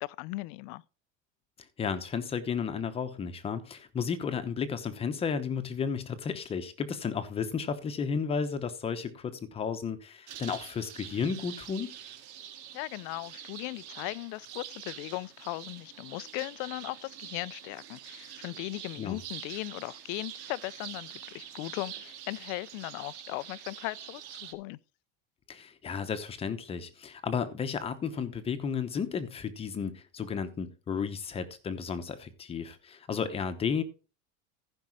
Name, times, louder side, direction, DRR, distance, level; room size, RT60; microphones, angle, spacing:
voice 1, 0.0-0.8 12.7-24.8, left 21 dB, 45° left, 0.4 m, -38 dB
voice 2, 1.8-11.9 19.0-19.2 25.5-33.8, left 6 dB, 15° left, 0.9 m, -33 dB
sound 1, 10.3-24.5, right 10 dB, 80° right, 2.0 m, -45 dB
15.0 x 5.4 x 4.7 m
cardioid pair, 165°, 34 cm